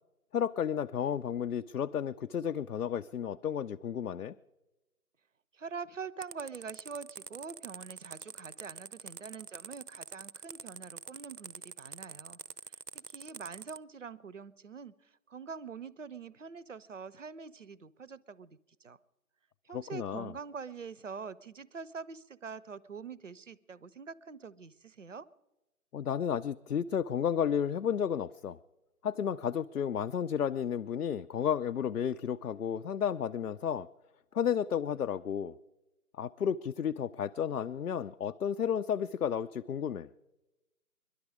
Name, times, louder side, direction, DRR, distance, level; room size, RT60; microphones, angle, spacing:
voice 1, 0.3-4.3 19.7-20.3 25.9-28.6 29.0-33.9 34.3-35.6 36.2-40.1, left 8 dB, 75° left, 9 dB, 0.6 m, -32 dB
voice 2, 5.5-12.4 12.7-19.0 19.6-25.3, right 5 dB, 55° right, 19 dB, 0.6 m, -45 dB
sound 1, 6.2-13.8, right 7 dB, 90° right, 0.7 m, -45 dB
22.5 x 11.5 x 4.8 m, 1.0 s
figure-of-eight pair, 175°, 46 cm